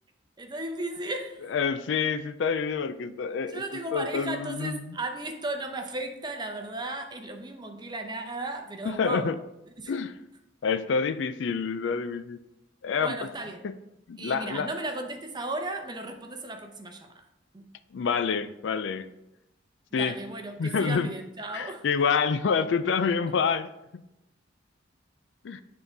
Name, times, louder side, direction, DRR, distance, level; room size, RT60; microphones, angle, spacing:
voice 1, 0.4-1.5 3.5-9.3 9.8-9.9 13.0-13.6 14.2-17.3 17.5-17.6 19.9-21.8, right 2 dB, 25° right, 5 dB, 0.7 m, -35 dB
voice 2, 1.5-3.6 3.9-4.9 8.8-9.4 9.9-10.1 10.6-12.4 12.8-13.3 13.6-13.7 14.1-14.7 17.9-19.1 19.9-20.1 20.6-21.1 21.5-23.7 25.4-25.6, left 5 dB, 65° left, 12 dB, 0.4 m, -27 dB
9.3 x 3.8 x 3.9 m, 0.90 s
head